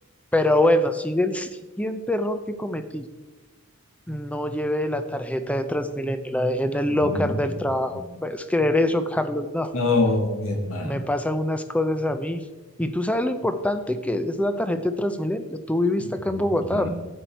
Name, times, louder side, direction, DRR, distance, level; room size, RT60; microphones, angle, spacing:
voice 1, 0.3-1.5 1.8-3.1 4.1-9.7 10.8-12.4 12.8-16.9, left 1 dB, 5° left, 10 dB, 0.5 m, -24 dB
voice 2, 6.9-7.4 7.9-8.0 9.7-11.0 16.3-16.9, left 2 dB, 65° left, 3 dB, 2.1 m, -25 dB
12.0 x 8.3 x 4.5 m, 1.3 s
head